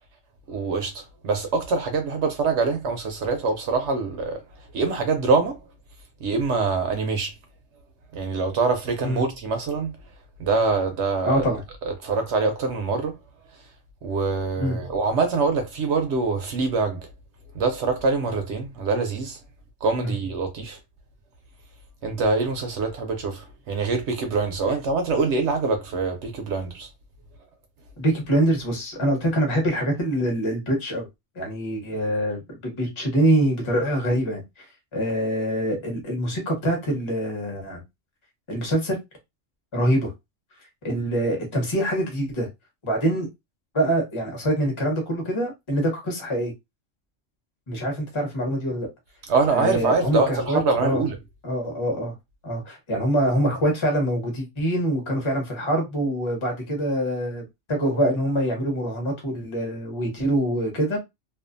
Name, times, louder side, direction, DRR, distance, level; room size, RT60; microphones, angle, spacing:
voice 1, 0.5-4.4 4.7-5.6 6.2-7.3 8.1-9.9 10.4-11.5 11.9-13.2 14.0-17.1 17.5-19.4 19.8-20.8 22.0-26.9 49.3-51.2, right 4 dB, 65° right, 0.8 m, -24 dB
voice 2, 11.2-11.6 14.6-14.8 20.0-20.1 28.0-31.1 31.4-34.6 34.9-37.8 38.5-39.0 39.7-40.1 40.8-42.5 42.8-43.3 43.7-46.5 47.7-48.9 49.5-51.0 51.4-52.1 52.4-61.0, right 1 dB, 25° left, 0.9 m, -24 dB
2.4 x 2.4 x 2.5 m
omnidirectional pair, 1.3 m